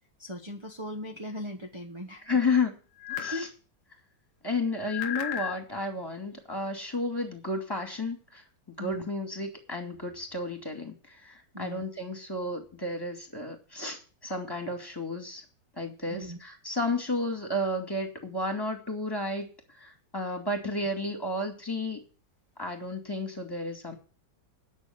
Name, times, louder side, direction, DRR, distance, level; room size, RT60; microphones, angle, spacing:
voice 1, 0.2-2.3 3.3-3.5 8.8-9.1 11.5-11.9 16.1-16.4, equal, 20° right, 3 dB, 0.9 m, -38 dB
voice 2, 2.3-2.7 3.1-3.5 4.4-8.4 8.8-15.4 15.8-22.0 22.6-23.9, left 2 dB, 10° left, 4 dB, 2.4 m, -32 dB
sound 1, 3.0-3.5 4.8-5.6, left 10 dB, 85° left, 1.8 m, -34 dB
10.0 x 6.5 x 8.9 m, 0.38 s
omnidirectional pair, 2.1 m